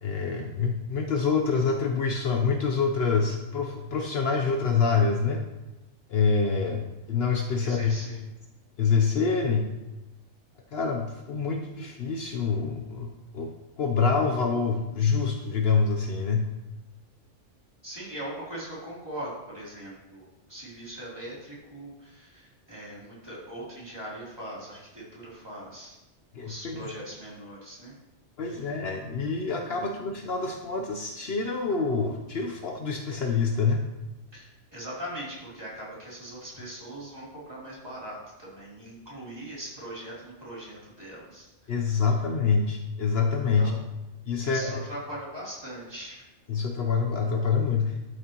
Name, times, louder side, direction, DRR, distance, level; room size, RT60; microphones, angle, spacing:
voice 1, 0.0-5.4 6.1-6.8 7.1-7.9 8.8-9.7 10.7-13.5 13.8-16.5 26.3-26.9 28.4-33.8 41.7-43.7 44.3-44.8 46.5-48.0, left 5 dB, 60° left, 3 dB, 0.9 m, -26 dB
voice 2, 7.6-8.2 17.8-25.9 26.4-27.9 28.4-28.8 34.3-42.1 43.5-43.8 44.4-46.3, right 1 dB, 20° right, -8 dB, 3.2 m, -41 dB
12.0 x 6.3 x 3.0 m, 1.0 s
omnidirectional pair, 1.2 m